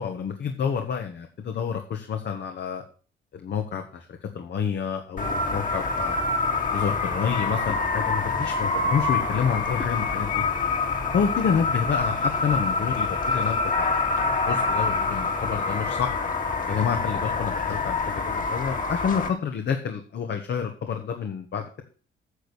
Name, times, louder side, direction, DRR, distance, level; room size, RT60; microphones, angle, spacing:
voice 1, 0.0-2.8 3.3-6.2 6.7-10.4 11.1-14.0 14.5-16.1 16.7-21.8, left 7 dB, 60° left, 4 dB, 1.5 m, -28 dB
sound 1, 5.2-19.3, left 3 dB, 40° left, 2.3 m, -26 dB
9.9 x 6.5 x 7.0 m, 0.41 s
cardioid pair, 90°, 20 cm